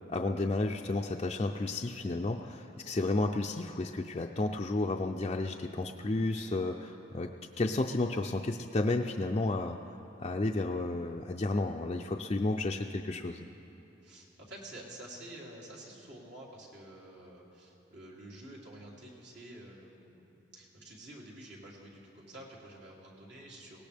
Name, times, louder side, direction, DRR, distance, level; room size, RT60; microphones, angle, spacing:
voice 1, 0.1-9.8 10.2-13.5, left 2 dB, 30° left, 0 dB, 0.5 m, -32 dB
voice 2, 14.0-23.8, right 1 dB, 65° right, -4 dB, 3.2 m, -49 dB
21.5 x 18.0 x 3.5 m, 2.9 s
head